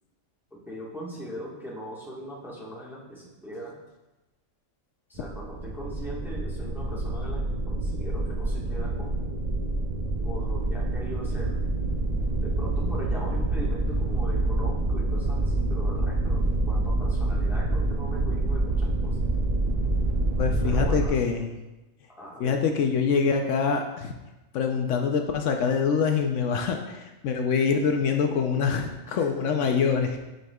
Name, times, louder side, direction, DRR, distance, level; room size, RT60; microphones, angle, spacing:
voice 1, 0.5-3.7 5.1-9.1 10.2-11.6 12.4-19.2 20.6-21.5 22.2-22.6 29.1-29.3, equal, ahead, -6 dB, 1.2 m, -40 dB
sound 1, 5.1-21.1, right 2 dB, 40° right, 0.6 m, -27 dB
voice 2, 20.4-21.5 22.4-24.1 24.5-30.2, left 6 dB, 75° left, 4 dB, 0.9 m, -25 dB
9.0 x 5.4 x 2.3 m, 1.1 s
omnidirectional pair, 1.3 m